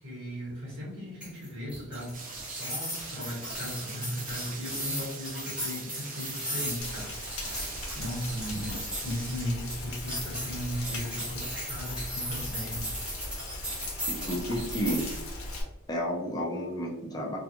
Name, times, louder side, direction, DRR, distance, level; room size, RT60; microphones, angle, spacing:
voice 1, 0.0-2.1 2.5-12.9, equal, 65° right, -4 dB, 1.2 m, -37 dB
sound 1, 1.2-15.2, equal, 5° right, 0.8 m, -37 dB
Rain, 2.1-9.5, right 4 dB, 40° right, 0.4 m, -43 dB
Rain 2, 6.8-15.6, left 2 dB, 85° left, 0.7 m, -39 dB
voice 2, 14.1-15.1 15.9-17.4, equal, 20° left, -2 dB, 0.4 m, -31 dB
2.3 x 2.3 x 2.7 m, 0.97 s
head